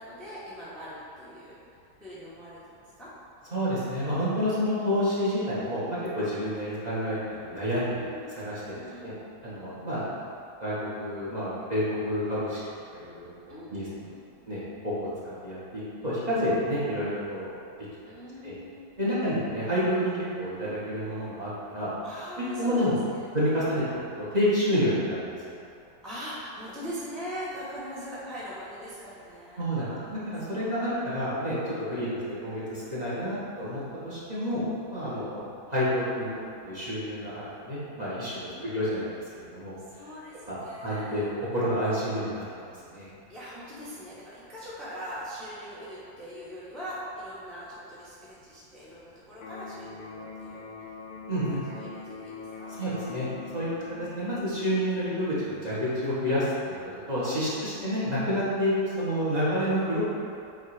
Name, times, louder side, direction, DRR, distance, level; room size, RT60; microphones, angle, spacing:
voice 1, 0.0-1.6 2.0-3.1 5.8-6.0 8.0-8.4 8.7-9.1 13.5-14.2 18.0-19.4 22.0-23.7 24.8-25.1 26.0-30.2 30.4-30.8 31.9-32.1 35.0-35.3 38.4-41.3 43.3-50.6 51.6-52.7 53.5-54.2, equal, ahead, -10 dB, 0.9 m, -42 dB
voice 2, 3.5-8.0 8.4-8.6 9.0-9.1 9.4-10.0 10.6-12.6 12.9-14.0 14.5-15.1 15.4-17.5 18.4-18.5 19.0-21.9 22.5-23.0 23.3-23.8 24.2-25.3 29.6-34.6 34.9-35.4 35.7-36.3 36.6-39.1 39.4-39.7 40.5-41.2 41.5-43.1 51.3-51.6 52.8-53.3 53.5-53.7 54.1-56.8 57.1-60.0, equal, 25° right, -9 dB, 1.3 m, -29 dB
Electric guitar, 49.4-57.3, left 4 dB, 65° left, 1.2 m, -43 dB
8.4 x 3.0 x 4.9 m, 2.6 s
omnidirectional pair, 2.1 m